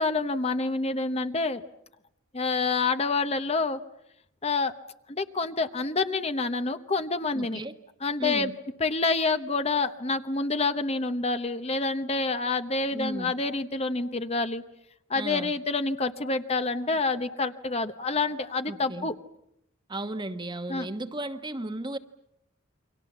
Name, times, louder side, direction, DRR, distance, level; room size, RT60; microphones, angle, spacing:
voice 1, 0.0-1.6 2.3-3.8 4.4-4.7 5.1-7.6 8.0-8.5 8.8-14.6 15.1-19.1 20.7-20.9, left 3 dB, 30° left, 10 dB, 1.0 m, -27 dB
voice 2, 7.3-7.7 8.2-8.6 12.9-13.3 15.1-15.5 18.7-19.1 19.9-22.0, right 2 dB, 20° right, 9 dB, 1.2 m, -35 dB
29.5 x 24.5 x 7.3 m, 0.78 s
head